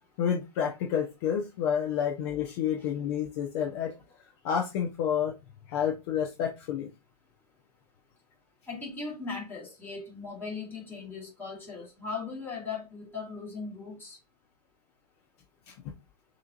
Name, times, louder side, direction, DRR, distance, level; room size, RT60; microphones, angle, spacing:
voice 1, 0.2-3.9 4.4-5.3 5.7-6.9 15.7-15.9, left 8 dB, 40° left, 0.9 m, -29 dB
voice 2, 8.7-14.2, left 4 dB, 10° left, 2.6 m, -38 dB
6.4 x 3.2 x 2.5 m
hypercardioid pair, 125°, 20 cm